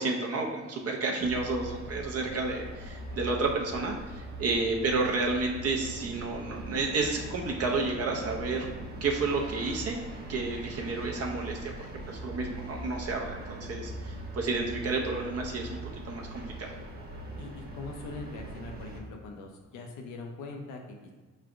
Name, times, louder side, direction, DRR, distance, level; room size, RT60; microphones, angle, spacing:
voice 1, 0.0-8.7 9.0-10.0 10.3-11.6 12.1-15.8 16.0-16.7, right 3 dB, 55° right, 1 dB, 0.6 m, -31 dB
sound 1, 1.2-19.0, right 1 dB, 30° right, 1.0 m, -41 dB
voice 2, 17.4-21.1, left 3 dB, 85° left, 2 dB, 0.6 m, -42 dB
4.8 x 3.2 x 2.5 m, 1.3 s
cardioid pair, 90°, 30 cm